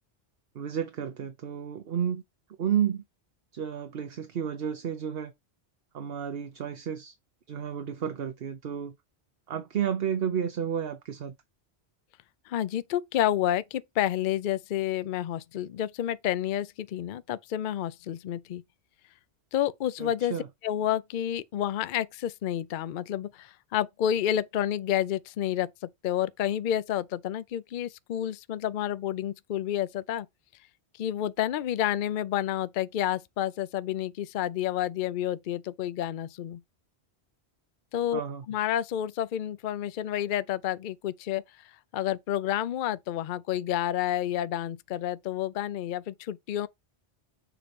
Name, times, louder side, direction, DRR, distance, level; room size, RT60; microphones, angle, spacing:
voice 1, 0.5-2.2 2.6-3.0 3.5-5.3 5.9-7.1 7.5-8.9 9.5-11.3 20.0-20.5 38.1-38.4, right 8 dB, 65° right, 1.0 m, -31 dB
voice 2, 12.5-18.6 19.5-20.3 20.6-25.7 26.0-30.3 31.0-36.6 37.9-38.2 38.5-46.7, left 11 dB, 60° left, 0.6 m, -30 dB
7.1 x 4.2 x 5.2 m
omnidirectional pair, 1.1 m